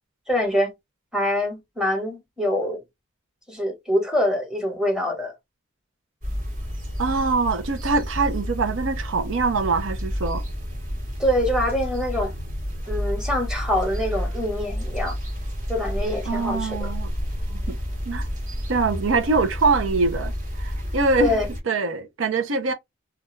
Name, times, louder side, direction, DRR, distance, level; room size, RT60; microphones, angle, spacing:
voice 1, 0.3-0.7 1.1-2.8 3.5-5.3 11.2-12.3 12.9-15.1 15.7-16.9 21.1-21.5, left 1 dB, 5° right, 1.0 m, -24 dB
sound 1, 6.2-21.6, equal, 40° right, 1.1 m, -30 dB
voice 2, 7.0-10.4 16.3-17.1 17.5-17.8 18.1-18.3 18.7-22.7, right 4 dB, 75° right, 0.6 m, -24 dB
2.3 x 2.2 x 3.1 m
head